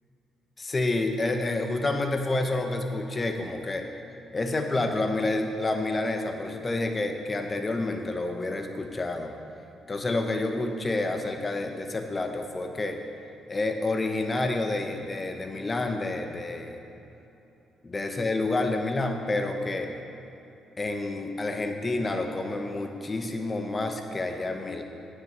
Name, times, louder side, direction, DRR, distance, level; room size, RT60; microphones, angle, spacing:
voice 1, 0.6-3.8 4.3-9.3 9.9-13.0 13.5-16.8 17.8-19.9 20.8-24.8, left 2 dB, 30° left, 4 dB, 1.1 m, -29 dB
9.6 x 7.5 x 6.6 m, 3.0 s
cardioid pair, 90°, 0 cm